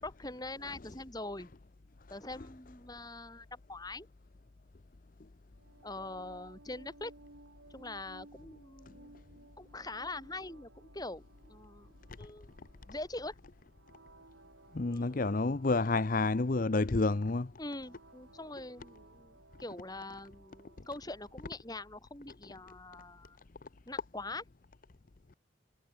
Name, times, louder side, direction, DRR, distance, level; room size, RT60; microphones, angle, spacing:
voice 1, 0.0-1.5 2.1-4.1 5.8-7.1 7.7-11.9 12.2-12.5 12.9-13.3 14.9-15.4 17.6-23.4 23.9-24.4, left 2 dB, 20° left, 3.7 m, -43 dB
sound 1, 5.5-21.5, right 2 dB, 75° right, 3.0 m, -60 dB
voice 2, 14.7-17.5, left 3 dB, 45° left, 0.7 m, -29 dB
head